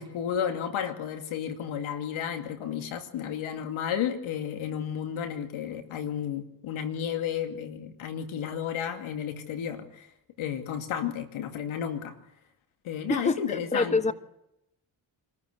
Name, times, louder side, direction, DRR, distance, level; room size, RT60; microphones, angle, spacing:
voice 1, 0.0-10.1 10.4-12.1 12.8-14.1, left 8 dB, 80° left, 6 dB, 2.5 m, -32 dB
voice 2, 13.1-14.1, left 3 dB, 15° left, 13 dB, 1.1 m, -26 dB
26.0 x 14.0 x 8.2 m, 0.85 s
supercardioid pair, 50°, 48 cm